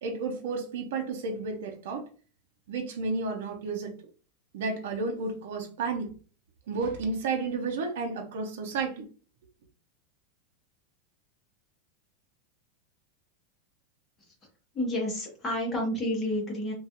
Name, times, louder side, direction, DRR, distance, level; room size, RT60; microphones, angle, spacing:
voice 1, 0.0-2.1 2.7-3.9 4.5-6.1 6.7-9.1, right 4 dB, 70° right, 2 dB, 0.6 m, -32 dB
voice 2, 14.7-16.7, left 1 dB, 10° left, -3 dB, 0.9 m, -30 dB
2.3 x 2.2 x 2.8 m, 0.37 s
supercardioid pair, 175°, 0 cm